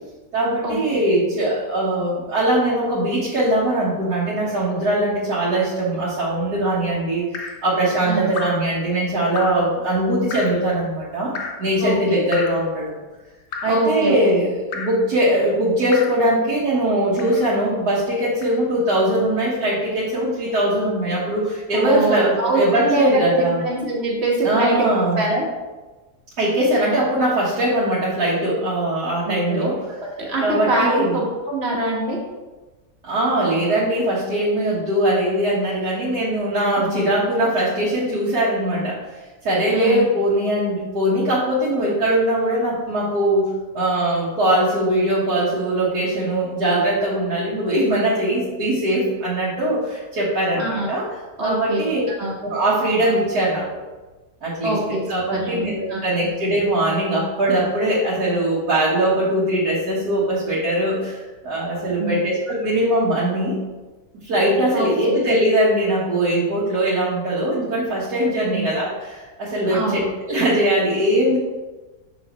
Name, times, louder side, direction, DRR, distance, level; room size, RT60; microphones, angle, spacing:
voice 1, 0.3-11.3 11.6-13.0 13.6-23.6 24.4-25.2 26.4-29.8 30.4-31.2 33.0-39.0 39.4-51.1 51.4-52.0 52.4-53.8 54.4-63.6 64.2-71.4, right 1 dB, 75° right, -9 dB, 1.9 m, -21 dB
Drip, 7.3-7.7 8.3-8.7 9.4-9.7 10.3-10.6 11.4-11.7 12.3-12.7 13.5-13.9 14.7-15.1 15.9-16.2 17.2-17.5 18.4-18.6, left 5 dB, 60° left, 0.7 m, -32 dB
voice 2, 11.8-12.2 13.6-14.1 21.7-25.5 29.2-29.7 30.2-32.2 36.8-37.1 39.7-40.0 50.6-50.9 51.4-51.9 52.2-52.4 54.6-55.0 55.4-56.0 62.0-62.2 64.7-65.1 68.5-68.7 69.7-70.0, right 2 dB, 45° right, -3 dB, 1.5 m, -24 dB
6.2 x 5.7 x 3.0 m, 1.2 s
omnidirectional pair, 1.7 m